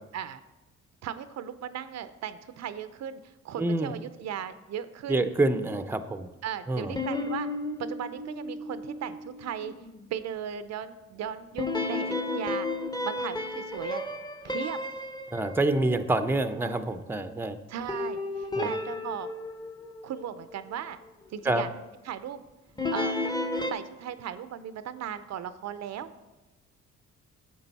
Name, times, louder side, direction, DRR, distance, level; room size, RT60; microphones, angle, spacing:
voice 1, 1.0-5.2 6.4-7.5 7.8-9.7 10.1-12.7 13.0-14.0 14.4-14.8 17.7-19.3 20.0-21.0 21.3-21.7 22.0-22.4 22.9-23.2 23.7-26.1, right 9 dB, 60° right, 12 dB, 0.6 m, -37 dB
voice 2, 3.6-3.9 5.1-6.3 6.7-7.0 15.3-17.6 18.6-18.7 21.4-21.7, right 2 dB, 5° right, 9 dB, 0.6 m, -27 dB
sound 1, 6.9-10.0 11.6-16.1 17.9-20.5 22.8-23.7, left 2 dB, 15° left, 0.8 m, -33 dB
9.9 x 7.5 x 4.1 m, 1.1 s
cardioid pair, 90°, 30 cm